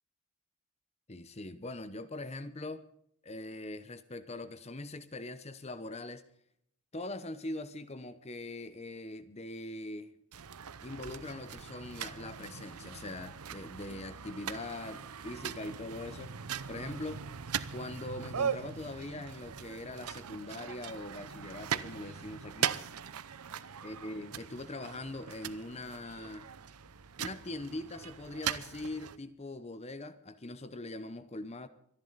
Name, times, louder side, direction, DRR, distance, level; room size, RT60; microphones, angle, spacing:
voice 1, 1.1-2.9 3.2-6.2 6.9-10.2 10.8-17.2 17.7-22.8 23.8-26.5 27.2-31.7, left 2 dB, 30° left, 0.8 m, -42 dB
sound 1, 10.3-29.2, right 8 dB, 85° right, 0.8 m, -40 dB
25.0 x 11.0 x 4.0 m
head